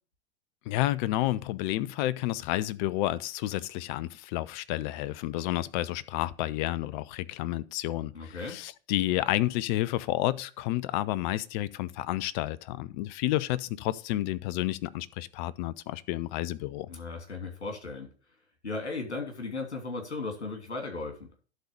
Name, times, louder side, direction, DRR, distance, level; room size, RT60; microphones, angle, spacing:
voice 1, 0.7-16.9, left 15 dB, 45° left, 0.7 m, -30 dB
voice 2, 8.1-8.6 16.9-18.1 18.6-21.2, left 3 dB, 85° left, 3.0 m, -36 dB
11.5 x 4.0 x 6.8 m
hypercardioid pair, 100°, 33 cm